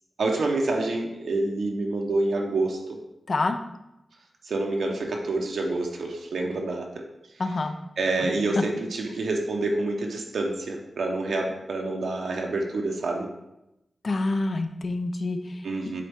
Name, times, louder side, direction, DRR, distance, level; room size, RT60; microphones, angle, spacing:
voice 1, 0.2-3.0 4.4-7.0 8.0-13.3 15.6-16.0, right 2 dB, 80° right, 1 dB, 0.9 m, -27 dB
voice 2, 3.3-3.6 7.4-7.7 8.3-8.6 14.0-15.6, left 2 dB, 45° left, 7 dB, 0.5 m, -27 dB
7.5 x 4.2 x 3.5 m, 0.89 s
wide cardioid pair, 145°, 0 cm